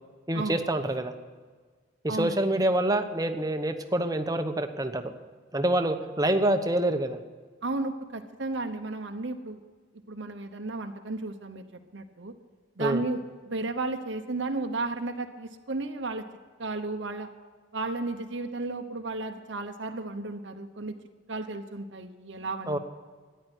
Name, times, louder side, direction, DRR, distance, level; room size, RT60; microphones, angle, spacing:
voice 1, 0.3-1.1 2.0-5.1 5.5-7.2 12.8-13.0 22.7-22.8, right 1 dB, 20° right, 7 dB, 1.0 m, -26 dB
voice 2, 2.1-2.4 7.6-9.6 10.1-12.3 12.8-13.2 13.5-16.2 16.6-17.3 17.7-20.9 21.3-22.8, right 2 dB, 65° right, 5 dB, 0.9 m, -33 dB
14.0 x 10.5 x 8.0 m, 1.5 s
head